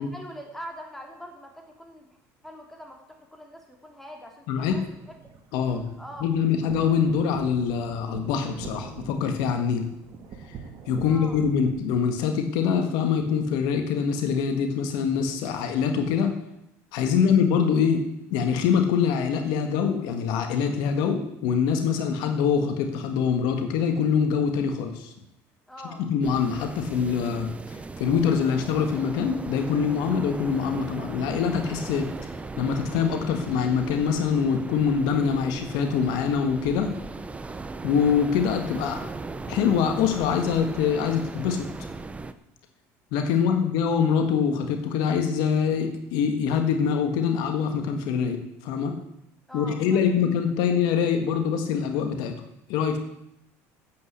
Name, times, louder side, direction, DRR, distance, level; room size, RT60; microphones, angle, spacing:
voice 1, 0.0-2.2 2.4-5.2 6.0-6.2 11.0-11.4 17.1-17.3 25.7-26.0 43.3-43.6 49.5-50.2, equal, 5° left, 1 dB, 3.1 m, -43 dB
voice 2, 4.5-4.8 5.5-5.8 6.2-9.8 10.9-16.3 16.9-18.0 18.3-25.1 26.0-32.1 32.6-36.9 37.8-39.0 39.5-41.7 43.1-48.9 49.5-52.3 52.7-53.0, left 7 dB, 75° left, 5 dB, 1.6 m, -24 dB
sound 1, 4.5-11.7, right 6 dB, 50° right, 2.1 m, -43 dB
sound 2, 26.2-42.3, right 3 dB, 15° right, 0.8 m, -38 dB
9.3 x 8.3 x 8.1 m, 0.81 s
supercardioid pair, 95°, 7 cm